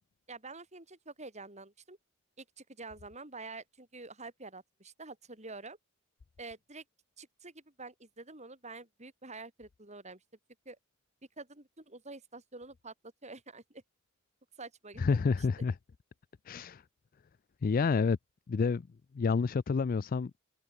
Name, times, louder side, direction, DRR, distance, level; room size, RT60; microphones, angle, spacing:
voice 1, 0.3-2.0 2.4-5.8 6.4-6.8 7.2-10.2 10.7-10.8 11.4-12.9 13.2-13.8 14.6-15.0, right 3 dB, 30° right, 7.7 m, -47 dB
voice 2, 15.0-15.7 16.5-16.8 17.6-18.2 18.5-18.9 19.1-20.3, left 5 dB, 40° left, 0.4 m, -28 dB
open air
head